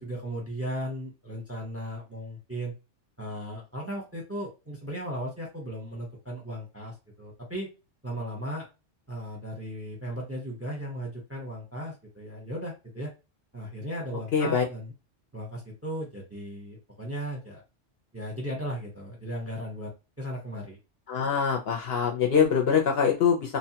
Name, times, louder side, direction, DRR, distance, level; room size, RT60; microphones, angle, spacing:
voice 1, 0.0-2.7 3.2-7.7 8.0-8.7 9.1-13.1 13.5-14.9 15.3-17.6 18.1-19.9 20.2-20.8, equal, 15° right, -1 dB, 0.6 m, -36 dB
voice 2, 14.3-14.6 21.1-23.6, left 7 dB, 60° left, 1 dB, 0.7 m, -24 dB
2.8 x 2.2 x 2.8 m, 0.28 s
omnidirectional pair, 1.3 m